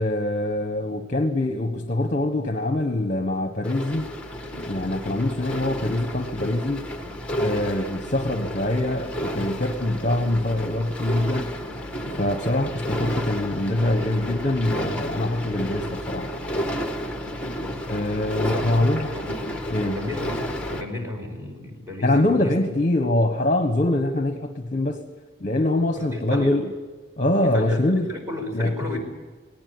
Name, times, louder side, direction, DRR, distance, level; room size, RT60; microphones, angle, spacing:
voice 1, 0.0-4.1 4.7-6.9 7.4-11.6 12.1-16.3 17.9-19.1 19.7-20.0 22.0-25.1 25.4-26.7 27.2-28.1 28.5-28.9, left 1 dB, 40° left, 6 dB, 1.3 m, -24 dB
sound 1, 3.6-20.8, equal, 5° left, 1.8 m, -31 dB
voice 2, 18.4-22.5 26.0-26.5 27.4-29.0, left 2 dB, 15° right, 2 dB, 4.9 m, -33 dB
19.0 x 19.0 x 9.5 m, 1.3 s
head